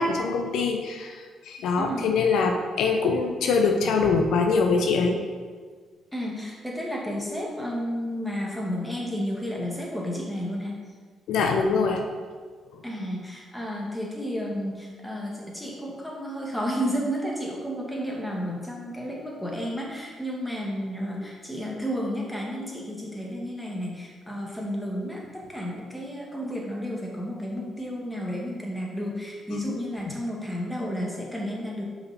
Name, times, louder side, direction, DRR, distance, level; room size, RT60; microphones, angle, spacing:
voice 1, 0.0-5.2 11.3-12.0 12.7-12.8, left 4 dB, 75° left, 3 dB, 0.6 m, -23 dB
voice 2, 1.8-2.1 6.1-10.8 12.8-31.8, equal, 5° left, -3 dB, 1.8 m, -32 dB
5.2 x 4.8 x 4.2 m, 1.5 s
supercardioid pair, 60°, 0 cm